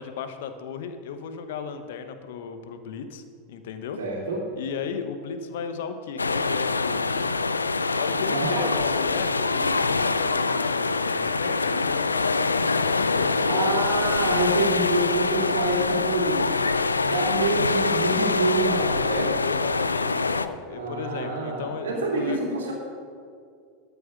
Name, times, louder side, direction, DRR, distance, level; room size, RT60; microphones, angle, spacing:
voice 1, 0.0-3.2 3.5-4.0 4.5-7.3 8.0-13.7 19.1-22.5, left 6 dB, 60° left, 9 dB, 0.9 m, -35 dB
voice 2, 4.0-4.4 8.3-8.7 13.5-16.5 17.0-19.3 20.7-22.7, right 2 dB, 70° right, -1 dB, 2.5 m, -27 dB
sound 1, 6.2-20.5, left 3 dB, 85° left, 0.4 m, -24 dB
12.5 x 7.0 x 6.1 m, 2.2 s
figure-of-eight pair, 85°, 0 cm